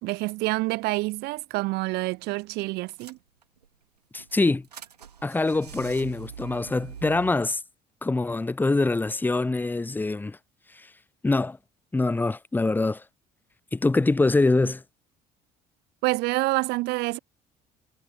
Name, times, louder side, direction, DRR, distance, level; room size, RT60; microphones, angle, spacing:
voice 1, 0.0-3.2 16.0-17.2, right 22 dB, 55° right, 0.5 m, -27 dB
sound 1, 1.9-2.2 2.4-2.5 2.9-3.7 4.2-7.3, right 7 dB, 85° right, 2.4 m, -43 dB
voice 2, 4.1-4.7 5.2-7.6 8.0-10.4 10.8-10.9 11.2-11.6 11.9-13.0 13.7-14.8, left 3 dB, 10° left, 0.5 m, -24 dB
figure-of-eight pair, 55°, 20 cm